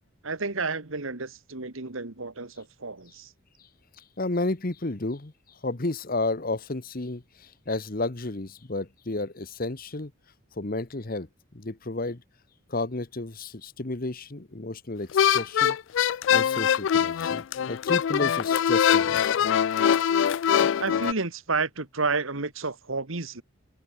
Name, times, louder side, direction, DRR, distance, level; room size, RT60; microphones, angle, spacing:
voice 1, 0.2-3.3 20.8-23.4, right 4 dB, 75° right, 1.9 m, -31 dB
voice 2, 4.2-5.3 5.6-10.1 10.6-11.3 11.5-12.2 12.7-15.8 16.3-19.3, left 2 dB, 45° left, 1.1 m, -32 dB
sound 1, 15.1-21.1, left 8 dB, 60° left, 0.3 m, -23 dB
head